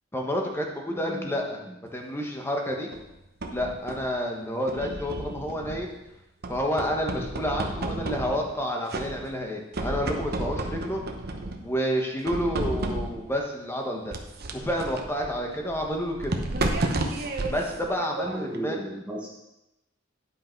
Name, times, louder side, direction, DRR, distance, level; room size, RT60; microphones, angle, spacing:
voice 1, 0.1-1.6 1.9-2.9 3.5-5.9 6.5-11.0 11.6-14.1 14.5-16.3 17.5-18.8, equal, 15° left, 1 dB, 1.2 m, -29 dB
voice 2, 0.9-1.3 1.6-1.8 18.2-19.3, right 1 dB, 5° right, -5 dB, 1.2 m, -35 dB
sound 1, 2.9-4.2 4.7-6.0 6.4-8.6 8.9-9.5 9.7-11.7 12.3-13.3 14.1-18.6, right 2 dB, 55° right, 0.9 m, -32 dB
10.5 x 5.6 x 4.6 m, 0.92 s
head